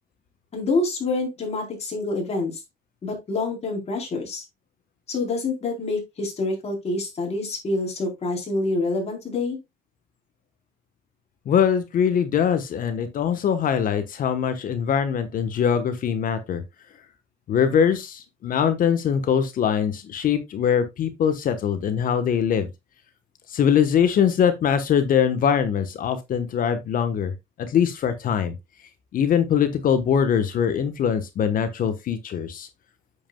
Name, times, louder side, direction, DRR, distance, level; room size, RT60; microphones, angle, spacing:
voice 1, 0.5-2.5 3.0-4.4 5.1-9.6, left 3 dB, 40° left, 4.1 m, -27 dB
voice 2, 11.5-16.6 17.5-22.7 23.5-27.3 27.6-28.5 29.1-32.7, left 8 dB, 55° left, 1.3 m, -22 dB
8.5 x 7.8 x 2.3 m
cardioid pair, 110°, 17 cm